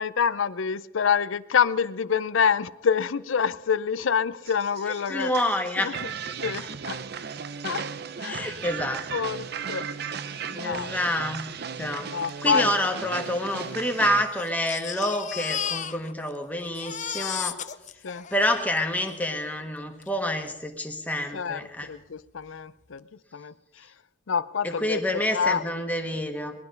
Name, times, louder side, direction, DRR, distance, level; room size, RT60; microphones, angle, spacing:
voice 1, 0.0-5.3 5.8-6.1 6.4-7.0 7.6-7.9 8.2-8.6 9.1-9.9 10.5-11.3 12.0-12.7 18.0-18.2 21.3-23.1 23.3-23.9 24.3-25.6, left 6 dB, 90° left, 17 dB, 0.5 m, -27 dB
sound 1, 4.5-14.2, right 6 dB, 55° right, 0.6 m, -36 dB
voice 2, 5.1-5.9 8.2-9.0 10.5-11.5 11.8-12.1 12.4-17.6 18.3-21.9 24.6-26.5, left 1 dB, 10° left, 4 dB, 1.3 m, -28 dB
Crying sobbing, 12.3-12.4 12.6-12.7 13.5-16.4 16.6-19.2 20.0-20.1 20.5-20.6, left 9 dB, 40° left, 0.5 m, -35 dB
20.0 x 12.0 x 5.2 m, 1.0 s
head